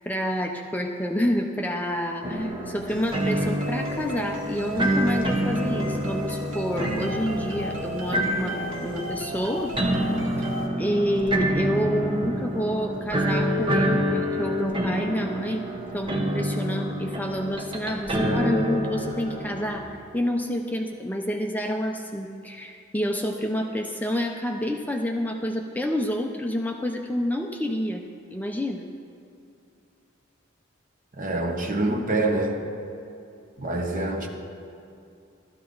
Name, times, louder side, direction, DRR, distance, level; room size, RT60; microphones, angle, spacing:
voice 1, 0.1-9.7 10.4-10.5 10.8-15.7 15.9-28.0 28.3-28.9, equal, 10° left, 2 dB, 0.6 m, -28 dB
sound 1, 2.2-19.8, equal, 25° right, 1.1 m, -27 dB
sound 2, 2.9-10.7, right 1 dB, 75° right, 1.8 m, -36 dB
voice 2, 31.2-32.6 33.6-34.3, right 2 dB, 45° right, 2 dB, 1.3 m, -26 dB
15.5 x 13.0 x 3.9 m, 2.6 s
head